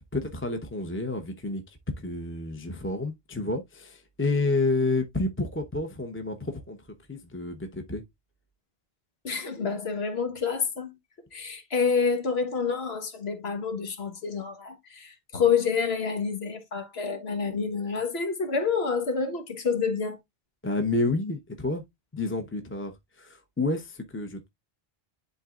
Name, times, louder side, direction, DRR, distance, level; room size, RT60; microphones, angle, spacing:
voice 1, 0.0-6.8 7.1-8.0 20.6-21.8 22.1-24.5, left 2 dB, 15° left, 0.8 m, -30 dB
voice 2, 9.2-10.9 11.3-20.2, left 5 dB, 85° left, 1.5 m, -28 dB
11.0 x 3.8 x 2.4 m
omnidirectional pair, 1.0 m